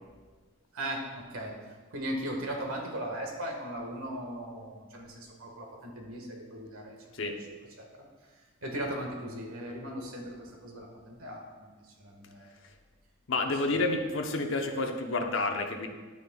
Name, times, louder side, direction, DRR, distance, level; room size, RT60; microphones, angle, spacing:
voice 1, 0.7-1.6 1.9-7.0 7.8-7.9 8.6-11.7 12.0-12.5 13.7-13.8, right 1 dB, 80° right, 1 dB, 1.6 m, -38 dB
voice 2, 13.3-15.9, left 2 dB, 65° left, 4 dB, 0.8 m, -30 dB
11.0 x 8.6 x 2.3 m, 1.4 s
head